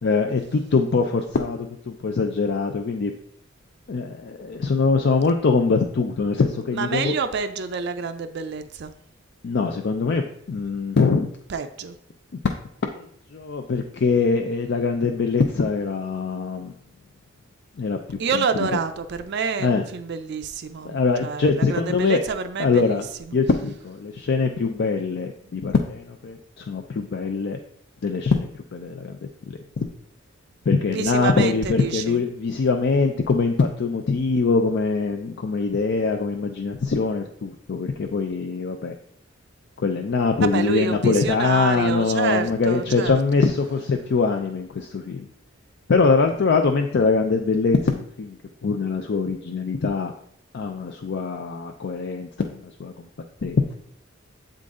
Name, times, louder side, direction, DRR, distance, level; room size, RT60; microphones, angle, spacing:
voice 1, 0.0-3.1 3.9-7.1 9.4-11.3 12.4-12.6 12.8-16.7 17.8-18.2 18.6-18.7 19.6-19.9 20.8-22.2 22.6-23.0 23.3-27.6 28.0-29.2 29.5-29.9 30.7-38.9 39.8-45.3 45.9-50.1 50.5-53.1 53.4-53.7, left 4 dB, 55° left, 4 dB, 0.4 m, -23 dB
voice 2, 6.7-8.9 11.5-12.0 18.2-23.0 30.9-32.2 40.4-43.4, right 5 dB, 55° right, 8 dB, 0.4 m, -28 dB
7.5 x 3.9 x 3.6 m, 0.66 s
head